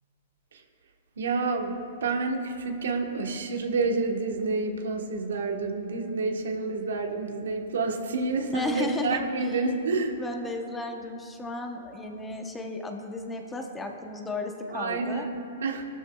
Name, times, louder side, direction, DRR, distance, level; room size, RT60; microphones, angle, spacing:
voice 1, 1.2-10.2 14.7-15.9, right 3 dB, 85° right, 3 dB, 1.3 m, -29 dB
voice 2, 8.5-9.6 10.2-15.3, left 2 dB, 10° left, 3 dB, 0.9 m, -34 dB
17.5 x 13.0 x 2.3 m, 2.4 s
hypercardioid pair, 140°, 0 cm